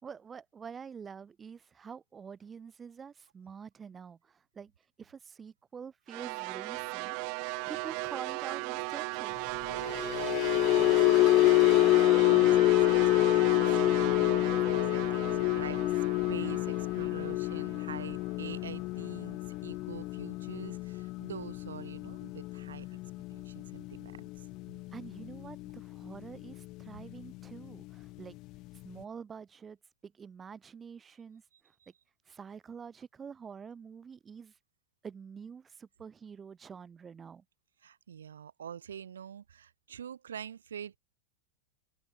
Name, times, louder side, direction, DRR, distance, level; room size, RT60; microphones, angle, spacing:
voice 1, 0.0-4.7 5.0-7.2 7.7-9.4 24.9-28.4 28.8-29.8 30.0-31.7 32.2-34.6 35.0-37.4, right 6 dB, 20° right, 3.6 m, -47 dB
sound 1, 6.1-18.3, right 40 dB or more, 45° right, 1.7 m, -37 dB
sound 2, 9.7-26.1 26.4-26.7 27.1-27.3, left 21 dB, 40° left, 0.4 m, -27 dB
voice 2, 9.8-15.8 16.3-23.0 23.3-24.5 31.8-31.9 37.8-41.0, right 8 dB, 65° right, 2.6 m, -46 dB
open air
figure-of-eight pair, 90°, 0 cm